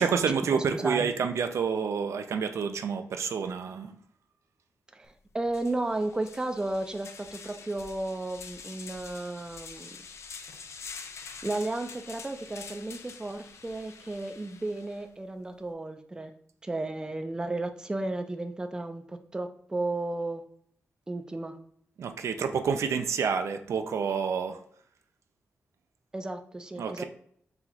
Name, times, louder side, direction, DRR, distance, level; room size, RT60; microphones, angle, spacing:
voice 1, 0.0-4.0 22.0-24.6 26.8-27.0, right 6 dB, 75° right, 7 dB, 0.4 m, -28 dB
voice 2, 0.5-1.1 4.9-10.0 11.4-16.3 16.6-20.4 21.1-21.6 26.1-27.0, right 2 dB, 15° right, 7 dB, 0.4 m, -33 dB
sound 1, 5.0-5.1 5.5-15.0, left 5 dB, 70° left, 0.4 m, -46 dB
4.4 x 2.4 x 3.9 m, 0.64 s
wide cardioid pair, 100°, 5 cm